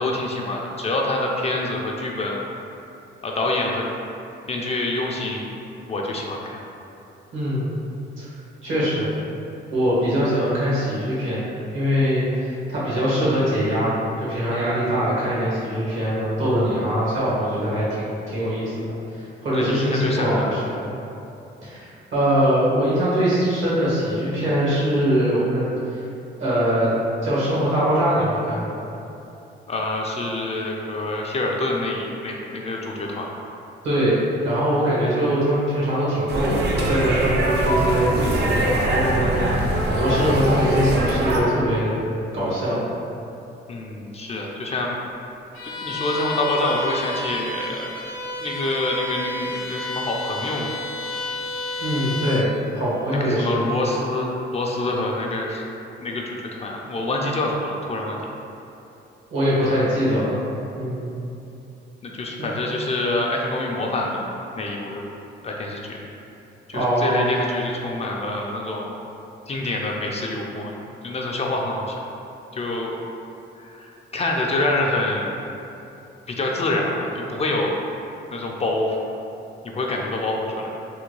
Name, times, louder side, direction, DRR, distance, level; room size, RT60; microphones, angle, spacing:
voice 1, 0.0-2.5 3.2-3.9 4.5-5.5 5.9-6.6 19.5-20.6 29.7-33.3 43.7-44.9 45.6-47.9 48.4-50.7 53.1-55.6 56.0-58.2 59.7-59.8 62.0-64.3 64.6-65.1 65.4-66.0 66.7-68.9 69.5-70.7 71.0-71.9 72.5-73.0 73.6-75.4 76.3-77.8 78.3-79.0 79.6-80.7, left 2 dB, 30° left, -1 dB, 0.4 m, -26 dB
voice 2, 7.3-7.7 8.2-8.3 8.6-9.1 9.7-11.4 11.7-18.7 19.1-20.8 21.6-25.6 25.9-26.0 26.4-26.9 27.2-28.8 33.8-41.9 42.3-42.8 51.8-52.5 52.7-53.6 59.3-60.4 60.7-61.1 62.4-62.5 66.7-67.3, equal, 75° right, -8 dB, 1.3 m, -22 dB
sound 1, 36.3-41.4, right 1 dB, 55° right, 0.5 m, -22 dB
Bowed string instrument, 45.5-52.5, left 2 dB, 80° left, 0.6 m, -31 dB
3.4 x 2.2 x 3.1 m, 2.8 s
cardioid pair, 90°, 20 cm